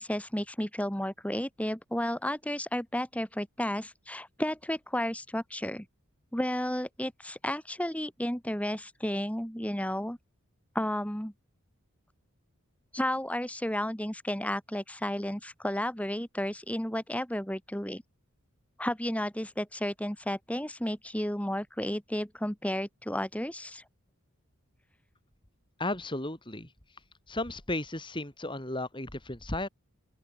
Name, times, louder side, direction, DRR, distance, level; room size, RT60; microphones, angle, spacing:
voice 1, 0.0-5.8 6.3-10.2 10.7-11.3 12.9-18.0 18.8-23.8, left 1 dB, 5° left, 2.9 m, -32 dB
voice 2, 25.8-26.7 27.3-29.7, left 2 dB, 20° left, 4.4 m, -34 dB
open air
head